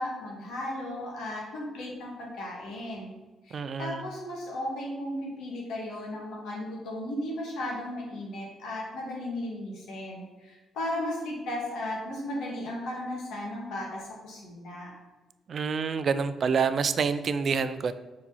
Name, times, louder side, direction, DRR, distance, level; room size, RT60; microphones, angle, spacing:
voice 1, 0.0-3.2 3.4-14.9, left 1 dB, 80° left, -3 dB, 1.8 m, -35 dB
voice 2, 3.5-4.0 15.5-17.9, right 5 dB, 50° right, 12 dB, 0.4 m, -27 dB
4.8 x 4.2 x 5.5 m, 1.2 s
cardioid pair, 90°, 0 cm